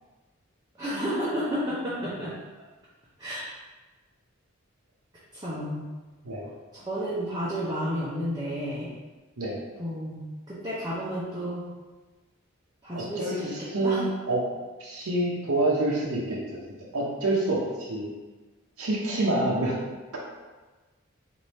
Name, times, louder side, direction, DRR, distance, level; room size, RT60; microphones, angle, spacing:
voice 1, 0.8-2.3 3.2-3.5 5.3-5.8 6.7-8.9 9.8-11.6 12.8-13.5 13.8-14.0, equal, 20° right, -9 dB, 0.6 m, -31 dB
voice 2, 12.9-14.4 14.8-16.6 16.9-18.1 18.8-19.8, right 2 dB, 80° right, -3 dB, 0.7 m, -27 dB
3.3 x 2.6 x 4.1 m, 1.2 s
head